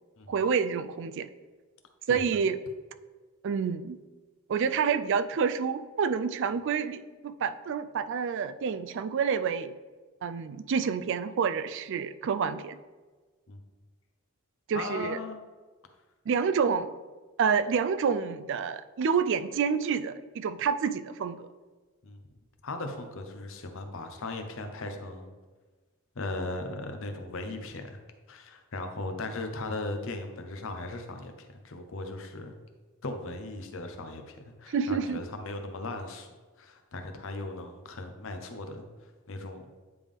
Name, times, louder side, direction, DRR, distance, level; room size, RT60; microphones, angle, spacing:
voice 1, 0.3-1.3 2.1-2.6 3.4-4.0 4.5-9.7 10.2-12.8 14.7-15.2 16.3-16.9 17.4-21.5 34.7-35.2, right 6 dB, 55° right, 13 dB, 0.3 m, -28 dB
voice 2, 14.7-15.4 22.0-22.2 22.6-25.3 26.1-28.0 28.3-32.5 33.0-36.3 36.6-39.6, left 2 dB, 60° left, 6 dB, 0.7 m, -38 dB
9.5 x 3.5 x 3.5 m, 1.3 s
head